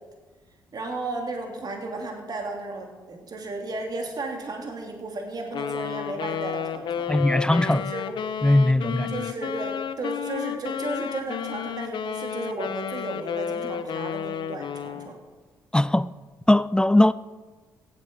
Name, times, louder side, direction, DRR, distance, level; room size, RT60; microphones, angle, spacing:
voice 1, 0.7-7.1 7.7-8.1 8.9-15.2, right 2 dB, 45° right, 2.9 m, -34 dB
Wind instrument woodwind instrument, 5.5-15.1, left 8 dB, 55° left, 0.9 m, -32 dB
voice 2, 7.1-7.9 8.4-9.1 15.7-16.1 16.5-17.1, left 1 dB, 10° left, 0.4 m, -19 dB
16.0 x 8.9 x 6.2 m
hypercardioid pair, 45°, 10 cm